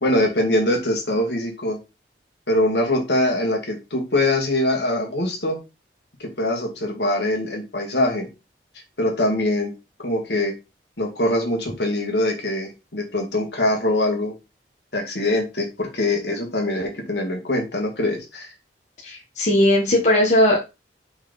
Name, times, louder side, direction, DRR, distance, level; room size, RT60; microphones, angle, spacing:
voice 1, 0.0-1.8 2.5-5.6 6.2-8.3 9.0-9.7 10.0-10.5 11.0-14.3 14.9-18.5, left 1 dB, 65° left, 2 dB, 2.0 m, -23 dB
voice 2, 19.0-20.7, left 1 dB, 40° left, -2 dB, 1.4 m, -18 dB
5.4 x 4.5 x 4.1 m, 0.27 s
head